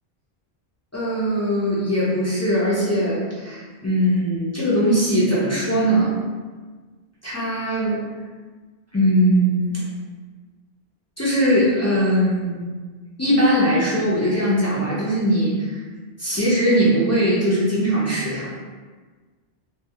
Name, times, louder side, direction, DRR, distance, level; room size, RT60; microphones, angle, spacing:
voice 1, 0.9-6.2 7.2-8.0 8.9-9.8 11.2-12.6 13.2-15.8 16.2-18.5, equal, 25° left, -9 dB, 0.4 m, -20 dB
2.3 x 2.2 x 2.7 m, 1.4 s
omnidirectional pair, 1.0 m